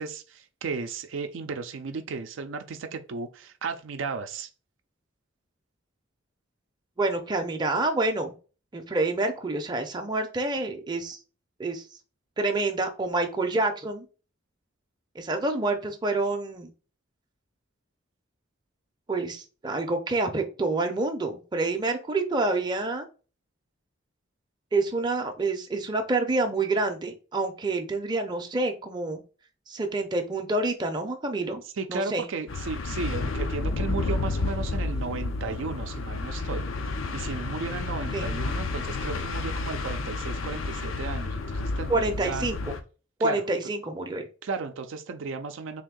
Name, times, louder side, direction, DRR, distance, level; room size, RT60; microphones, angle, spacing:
voice 1, 0.0-4.5 31.8-36.6 37.1-42.4 43.2-43.4 44.4-45.8, right 4 dB, 70° right, 0.4 m, -34 dB
voice 2, 7.0-8.3 8.7-11.2 11.6-11.8 12.4-14.0 15.1-16.7 19.1-23.1 24.7-29.2 29.7-31.6 31.9-32.3 38.1-38.3 41.9-42.7 43.2-44.3, right 2 dB, 20° right, 0.5 m, -27 dB
sound 1, 32.5-42.8, left 3 dB, 85° left, 0.5 m, -31 dB
3.5 x 2.6 x 3.6 m
head